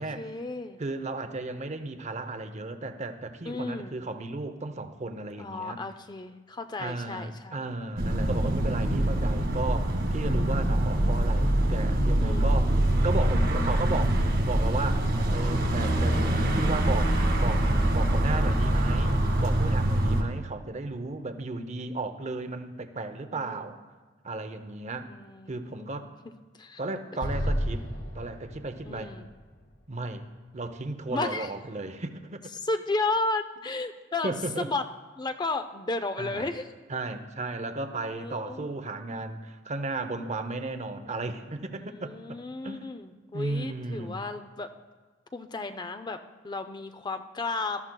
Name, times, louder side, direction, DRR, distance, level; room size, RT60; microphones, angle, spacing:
voice 1, 0.0-0.8 3.4-4.0 5.4-7.6 12.2-12.6 23.3-23.8 25.1-26.1 26.6-26.8 28.8-29.2 31.1-31.5 32.6-34.9 35.2-36.7 38.2-38.8 41.7-44.8 45.3-47.9, left 3 dB, 25° left, 9 dB, 0.4 m, -33 dB
voice 2, 0.8-5.8 6.8-12.8 13.0-14.2 14.4-16.2 16.5-17.6 17.9-23.8 24.2-25.1 25.5-26.1 26.8-27.8 28.1-29.1 29.9-30.2 30.5-32.5 34.2-34.7 36.2-36.5 36.9-42.8 43.3-44.2, right 2 dB, 35° right, 9 dB, 0.6 m, -34 dB
sound 1, 8.0-20.2, right 1 dB, 65° right, 1.8 m, -24 dB
Explosion, 27.2-30.5, equal, 70° left, 1.8 m, -33 dB
19.0 x 13.0 x 2.2 m, 1.3 s
head